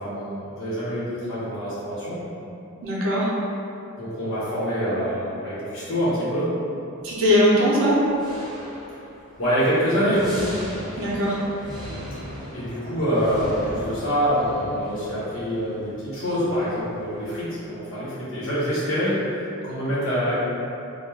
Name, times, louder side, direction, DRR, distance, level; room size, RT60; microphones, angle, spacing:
voice 1, 0.0-2.2 4.0-6.5 9.4-10.4 12.5-19.2 19.6-20.3, equal, 60° left, -10 dB, 1.0 m, -25 dB
voice 2, 2.8-3.3 7.0-8.0 11.0-11.4, equal, 60° right, -6 dB, 0.6 m, -20 dB
sound 1, 7.5-17.3, equal, 20° right, 0.7 m, -39 dB
2.3 x 2.2 x 3.2 m, 2.7 s
head